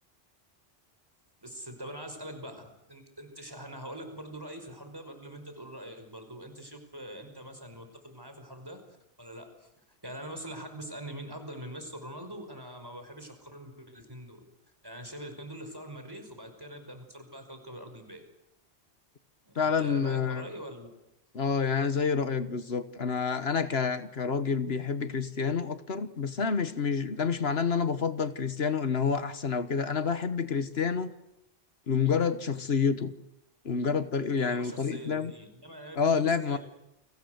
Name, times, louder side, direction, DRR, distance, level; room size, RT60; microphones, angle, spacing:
voice 1, 1.4-8.8 9.2-9.7 10.0-14.4 14.8-18.2 19.4-20.9 34.4-36.6, right 1 dB, 20° right, 6 dB, 5.4 m, -43 dB
voice 2, 19.6-20.5 21.3-31.1 31.9-33.1 33.6-35.3 35.9-36.6, left 6 dB, 75° left, 12 dB, 1.5 m, -28 dB
30.0 x 23.5 x 8.1 m, 0.85 s
omnidirectional pair, 1.1 m